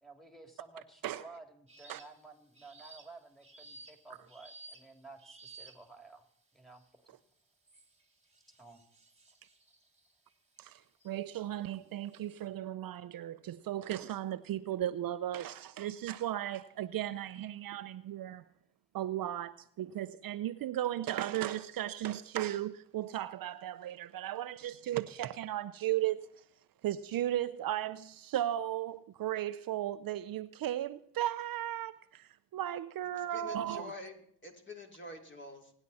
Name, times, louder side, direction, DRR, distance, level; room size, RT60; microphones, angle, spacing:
voice 1, 0.0-6.2 6.5-7.1 8.6-8.8, right 3 dB, ahead, 3.0 m, -53 dB
sound 1, 1.7-2.2 2.5-6.1 6.7-7.1 7.7-11.2 11.7-12.5, right 3 dB, 15° right, 2.1 m, -56 dB
voice 2, 10.6-18.4 18.9-26.2 26.8-33.9, right 12 dB, 60° right, 0.6 m, -36 dB
voice 3, 33.2-35.7, left 2 dB, 30° left, 3.4 m, -47 dB
25.0 x 10.0 x 4.2 m
supercardioid pair, 65°, 40 cm